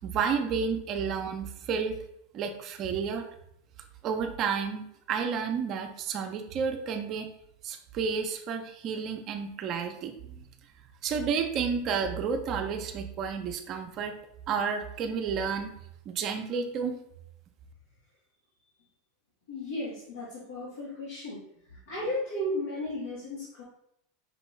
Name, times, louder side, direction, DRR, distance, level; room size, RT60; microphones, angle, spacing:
voice 1, 0.0-2.0 2.3-3.3 4.0-7.3 7.6-10.5 11.0-14.1 14.5-15.7 16.1-17.0, right 6 dB, 45° right, 5 dB, 0.6 m, -31 dB
voice 2, 19.5-21.4 21.7-23.6, left 1 dB, 80° left, -8 dB, 1.7 m, -34 dB
5.4 x 3.0 x 3.3 m, 0.75 s
hypercardioid pair, 95°, 0 cm